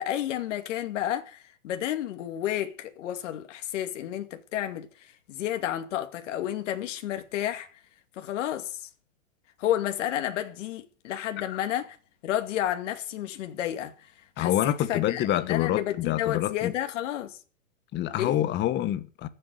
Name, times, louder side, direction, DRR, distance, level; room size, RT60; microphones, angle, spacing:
voice 1, 0.0-7.8 8.2-8.9 9.6-12.0 12.2-14.1 14.4-17.4 18.2-18.4, left 12 dB, 65° left, 2.4 m, -31 dB
voice 2, 14.4-16.7 17.9-19.3, left 12 dB, 25° left, 1.4 m, -26 dB
14.5 x 7.9 x 9.4 m
hypercardioid pair, 135°, 39 cm